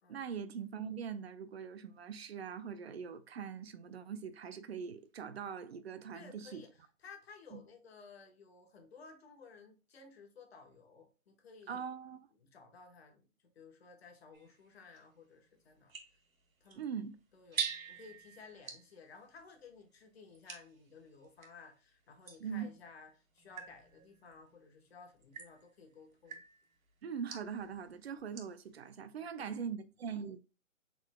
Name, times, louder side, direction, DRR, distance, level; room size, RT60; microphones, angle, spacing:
voice 1, 0.1-6.6 7.5-7.6 11.7-12.2 16.8-17.1 22.4-22.7 27.0-30.4, right 7 dB, 50° right, 0.6 m, -42 dB
voice 2, 6.1-11.8 12.4-13.3 13.5-15.9 16.6-16.9 17.3-26.4 29.4-29.6, left 4 dB, 50° left, 1.2 m, -56 dB
sound 1, 14.3-21.6 22.2-28.7, right 6 dB, 80° right, 1.6 m, -47 dB
6.2 x 3.8 x 2.2 m
hypercardioid pair, 160°, 41 cm